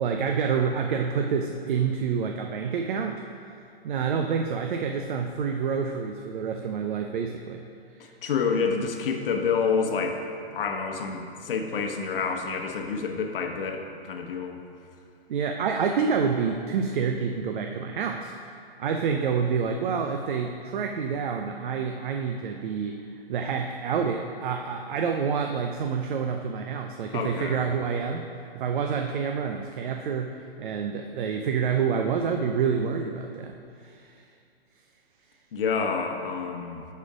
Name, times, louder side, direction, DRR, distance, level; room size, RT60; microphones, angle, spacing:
voice 1, 0.0-3.2 3.8-7.6 15.3-18.3 18.8-23.0 23.3-28.2 28.5-33.5 33.8-34.1, right 6 dB, 50° right, 4 dB, 0.6 m, -28 dB
voice 2, 8.2-10.2 10.5-14.6 27.1-27.7 35.5-36.9, left 5 dB, 60° left, 3 dB, 1.0 m, -28 dB
10.5 x 4.4 x 4.9 m, 2.5 s
hypercardioid pair, 135°, 31 cm